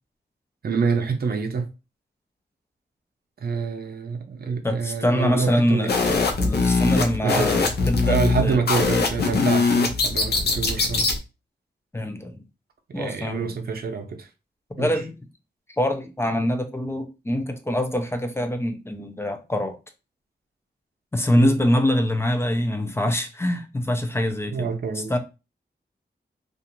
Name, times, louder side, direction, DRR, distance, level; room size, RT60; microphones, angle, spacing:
voice 1, 0.6-1.7 3.4-5.9 7.2-7.5 8.0-11.1 12.9-14.3 14.8-14.9 21.3-21.5 24.5-25.1, right 5 dB, 60° right, 0.6 m, -26 dB
voice 2, 4.6-5.9 6.4-8.6 11.9-12.4 12.9-13.4 14.8-15.1 15.8-19.8 21.1-24.7 25.1-25.2, left 1 dB, 15° left, 0.4 m, -24 dB
sound 1, 5.9-11.2, left 3 dB, 65° left, 0.6 m, -22 dB
2.4 x 2.4 x 2.9 m
wide cardioid pair, 130°, 18 cm